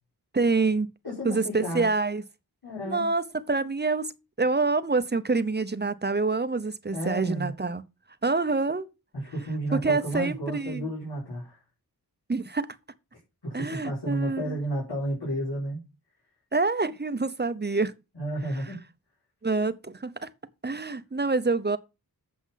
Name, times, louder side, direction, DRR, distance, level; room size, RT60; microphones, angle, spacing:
voice 1, 0.3-0.9 1.2-2.2 2.8-4.1 4.4-7.8 8.2-8.9 9.7-10.9 12.3-12.7 13.5-14.6 16.5-17.9 19.4-20.3 20.6-21.8, right 3 dB, 25° right, 0.8 m, -26 dB
voice 2, 1.0-1.9 2.6-3.1 6.9-7.5 9.1-11.6 13.4-15.8 18.1-18.8, right 1 dB, 85° left, 4.6 m, -32 dB
8.3 x 7.0 x 5.7 m
wide cardioid pair, 80°, 40 cm